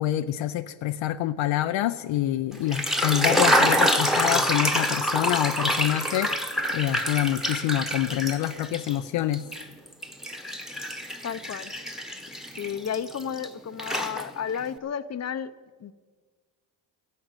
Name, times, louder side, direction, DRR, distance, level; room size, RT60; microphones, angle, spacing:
voice 1, 0.0-6.3 6.7-9.4, left 13 dB, 70° left, 8 dB, 0.7 m, -26 dB
sound 1, 2.5-9.0 9.3-13.5 13.8-14.6, equal, ahead, 1.1 m, -26 dB
voice 2, 11.2-11.7 12.6-15.5 15.8-15.9, left 8 dB, 35° left, 13 dB, 0.7 m, -32 dB
14.0 x 11.0 x 9.0 m, 1.5 s
cardioid pair, 120°, 47 cm